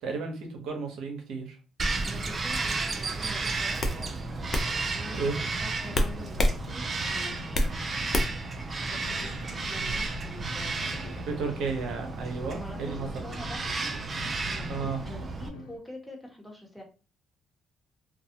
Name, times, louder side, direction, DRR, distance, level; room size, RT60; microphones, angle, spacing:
voice 1, 0.0-1.6 5.2-5.3 11.3-13.1 14.7-15.0, right 4 dB, 75° right, 3 dB, 0.9 m, -33 dB
Bird vocalization bird call bird song, 1.8-15.5, right 3 dB, 40° right, 0.5 m, -33 dB
voice 2, 2.0-4.1 4.9-7.6 8.8-11.7 12.5-14.0 14.4-16.8, left 1 dB, 5° left, 0 dB, 1.2 m, -46 dB
sound 1, 3.0-3.2 3.8-4.0 4.5-4.7 5.9-6.6 6.9-7.7 8.1-8.5, left 1 dB, 45° left, 0.6 m, -26 dB
sound 2, 3.7-15.8, left 4 dB, 85° left, 0.5 m, -46 dB
2.4 x 2.3 x 2.8 m, 0.34 s
supercardioid pair, 65°, 0 cm